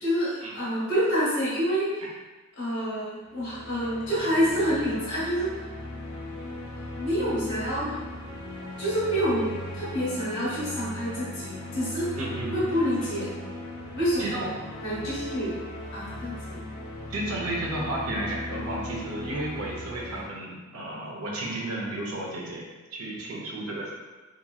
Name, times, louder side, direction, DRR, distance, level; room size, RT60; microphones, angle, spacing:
voice 1, 0.0-2.0 2.6-5.5 7.0-8.0 8.8-12.1 12.5-13.3 13.9-14.5 14.8-15.6 15.9-16.6, equal, 60° left, -9 dB, 1.0 m, -27 dB
sound 1, 3.3-20.3, left 1 dB, 85° left, 0.5 m, -38 dB
voice 2, 12.2-12.6 14.2-14.5 17.1-23.9, right 1 dB, 90° right, -3 dB, 0.6 m, -33 dB
2.8 x 2.5 x 2.3 m, 1.2 s
head